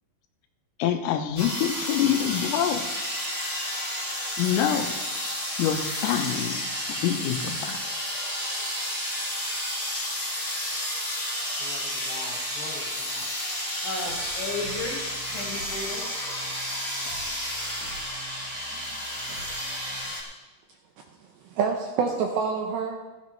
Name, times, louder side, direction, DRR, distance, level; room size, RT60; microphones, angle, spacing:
voice 1, 0.8-2.9 4.4-4.9 5.6-6.6 6.9-7.9, left 10 dB, 85° left, 6 dB, 3.6 m, -26 dB
sound 1, 1.4-20.2, left 1 dB, 10° left, 2.1 m, -31 dB
voice 2, 11.6-13.3 13.8-15.0 15.3-16.1, left 3 dB, 50° left, -2 dB, 3.5 m, -36 dB
sound 2, 14.0-20.0, right 4 dB, 40° right, 3.0 m, -47 dB
voice 3, 21.2-23.1, right 5 dB, 80° right, 2 dB, 2.5 m, -27 dB
16.0 x 13.5 x 3.2 m, 1.2 s
omnidirectional pair, 5.8 m